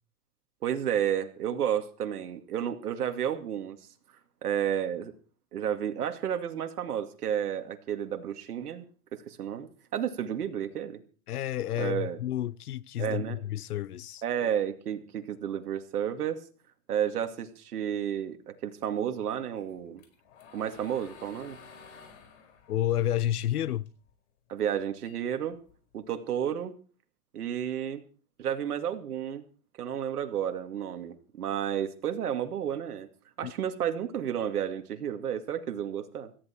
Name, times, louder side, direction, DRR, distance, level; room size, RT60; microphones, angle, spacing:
voice 1, 0.6-3.8 4.4-5.1 5.5-8.9 9.1-11.0 11.8-12.2 13.0-13.4 14.2-16.4 16.9-20.0 20.5-21.6 24.5-25.6 25.9-26.7 27.3-28.0 28.4-29.4 29.8-33.1 33.4-36.3, right 9 dB, 80° right, 2.5 m, -31 dB
voice 2, 11.3-14.2 22.7-23.9 33.4-33.5, left 12 dB, 85° left, 1.0 m, -30 dB
sound 1, 19.6-24.1 24.5-26.0, left 5 dB, 50° left, 4.9 m, -52 dB
18.0 x 14.0 x 4.5 m
hypercardioid pair, 140°, 44 cm